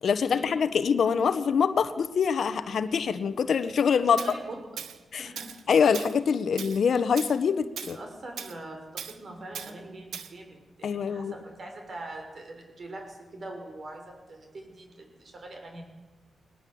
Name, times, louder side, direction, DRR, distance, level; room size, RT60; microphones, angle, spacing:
voice 1, 0.0-4.2 5.1-5.3 5.7-8.0 10.8-11.3, left 6 dB, 60° left, 12 dB, 1.2 m, -24 dB
voice 2, 4.0-4.9 5.2-5.5 7.9-15.8, right 2 dB, 45° right, 3 dB, 6.3 m, -43 dB
Tools, 4.2-4.3 4.8-5.0 5.4-5.6 5.9-6.1 6.6-6.8 7.2-7.4 7.8-8.0 8.4-8.5 9.0-9.2 9.5-9.7 10.1-10.3, right 8 dB, 90° right, 1.4 m, -38 dB
20.5 x 19.5 x 8.0 m, 1.2 s
cardioid pair, 105°, 0 cm